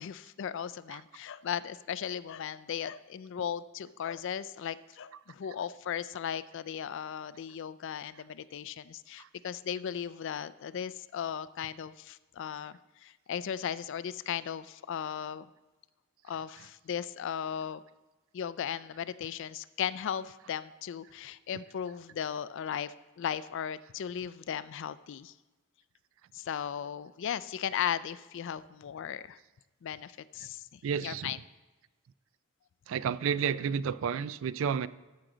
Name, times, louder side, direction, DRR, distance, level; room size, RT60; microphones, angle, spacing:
voice 1, 0.0-15.5 16.2-17.8 18.3-25.3 26.3-29.4 29.8-31.4, left 8 dB, 65° left, 16 dB, 0.4 m, -37 dB
voice 2, 30.8-31.3 32.9-34.9, right 7 dB, 70° right, 17 dB, 0.3 m, -31 dB
14.0 x 6.3 x 3.9 m, 1.2 s
head